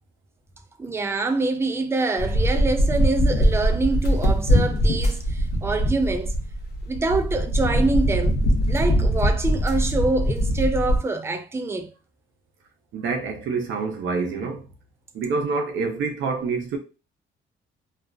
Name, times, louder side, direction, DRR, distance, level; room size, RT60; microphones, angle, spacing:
voice 1, 0.8-6.3 6.9-8.3 8.7-11.9, right 3 dB, 15° right, 0.4 m, -25 dB
sound 1, 2.2-11.0, equal, 55° left, 0.6 m, -22 dB
voice 2, 12.9-14.7 15.1-16.8, right 4 dB, 75° right, 0.7 m, -27 dB
2.4 x 2.1 x 2.4 m
cardioid pair, 90°, 20 cm